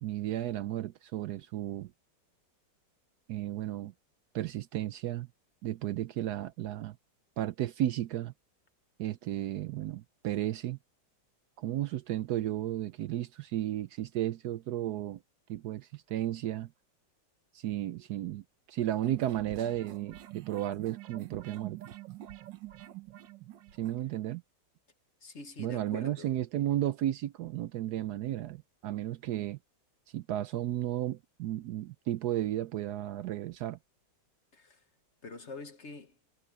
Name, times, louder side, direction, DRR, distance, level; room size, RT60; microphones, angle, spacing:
voice 1, 0.0-1.9 3.3-3.9 4.3-5.3 5.6-7.0 7.4-8.3 9.0-10.8 11.6-15.2 15.5-16.7 17.5-21.8 23.8-24.4 25.6-29.6 30.1-33.8, right 13 dB, 70° right, 1.1 m, -33 dB
sound 1, 19.0-24.0, right 14 dB, 85° right, 1.7 m, -46 dB
voice 2, 25.2-26.3 34.5-34.8 35.2-36.2, left 3 dB, 45° left, 1.3 m, -45 dB
omnidirectional pair, 2.0 m